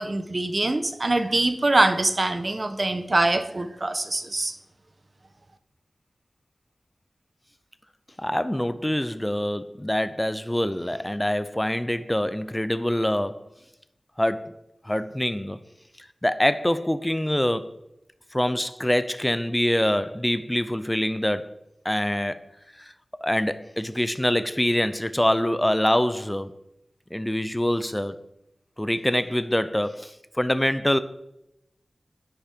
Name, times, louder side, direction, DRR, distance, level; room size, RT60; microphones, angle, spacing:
voice 1, 0.0-4.5, right 2 dB, 40° right, 1.0 m, -23 dB
voice 2, 8.2-13.5 14.2-14.5 14.8-15.6 16.0-17.8 18.3-21.5 21.8-22.4 22.8-26.5 27.1-28.2 28.8-31.0, left 1 dB, 10° left, 0.6 m, -25 dB
10.5 x 8.6 x 4.5 m
wide cardioid pair, 90°, 0 cm